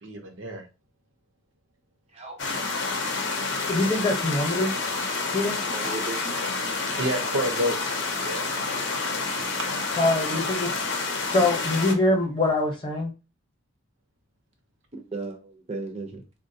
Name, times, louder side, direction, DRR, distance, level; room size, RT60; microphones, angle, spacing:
voice 1, 0.0-0.6 6.9-8.5, equal, 70° right, 4 dB, 0.7 m, -29 dB
sound 1, 2.4-11.9, left 3 dB, 60° left, 0.6 m, -29 dB
voice 2, 3.7-4.8 5.3-5.6 9.9-10.9 11.2-13.1, left 2 dB, 25° left, 1 dB, 0.8 m, -24 dB
voice 3, 5.7-6.3 14.9-16.2, right 3 dB, 30° right, 3 dB, 0.6 m, -36 dB
3.7 x 2.2 x 2.7 m, 0.30 s
head